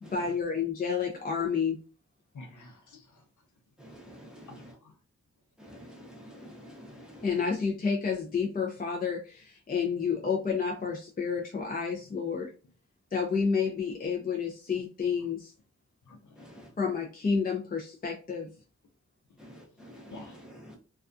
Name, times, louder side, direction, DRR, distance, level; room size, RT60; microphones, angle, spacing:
voice 1, 0.0-1.8 7.2-12.5 13.1-15.5 16.8-18.5, left 5 dB, 30° left, 0 dB, 0.4 m, -30 dB
voice 2, 2.3-3.2 4.5-4.9 16.1-16.4 20.1-20.4, left 2 dB, 85° left, 3 dB, 0.7 m, -49 dB
voice 3, 3.8-4.7 5.6-7.3 16.4-16.7 19.4-20.8, equal, ahead, -1 dB, 0.8 m, -49 dB
2.3 x 2.3 x 2.5 m, 0.35 s
wide cardioid pair, 100°, 30 cm